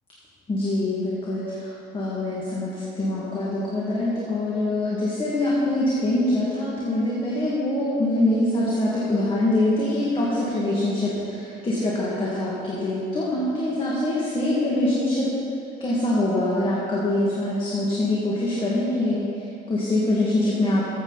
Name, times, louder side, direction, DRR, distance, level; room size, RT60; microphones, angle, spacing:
voice 1, 0.5-15.3 15.8-19.2 19.7-20.8, left 1 dB, 30° left, -6 dB, 2.1 m, -24 dB
14.0 x 7.8 x 4.1 m, 2.7 s
cardioid pair, 110°, 17 cm